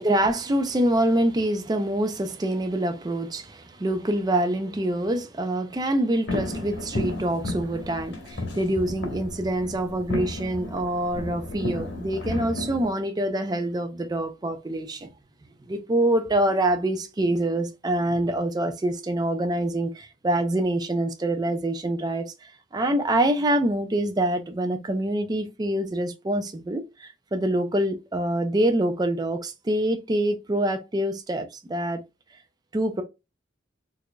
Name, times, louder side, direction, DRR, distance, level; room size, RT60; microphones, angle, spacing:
voice 1, 0.0-15.1 15.7-32.0 32.7-33.0, right 1 dB, 20° right, 0.4 m, -25 dB
sound 1, 6.3-12.9, left 2 dB, 70° left, 1.1 m, -33 dB
4.6 x 2.5 x 2.2 m
head